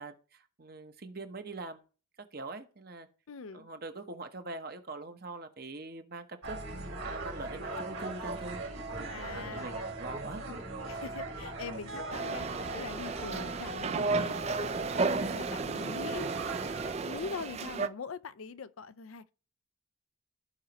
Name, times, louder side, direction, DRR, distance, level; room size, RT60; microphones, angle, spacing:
voice 1, 0.0-1.8 2.3-3.1 3.5-10.4, right 3 dB, 50° right, 1.0 m, -43 dB
voice 2, 3.3-3.7 9.1-9.8 10.9-14.4 14.9-16.3 17.0-19.2, left 5 dB, 85° left, 0.5 m, -42 dB
sound 1, 6.4-16.9, right 2 dB, 80° right, 3.4 m, -39 dB
sound 2, 12.1-17.9, right 4 dB, 30° right, 0.3 m, -33 dB
15.0 x 5.1 x 2.9 m
head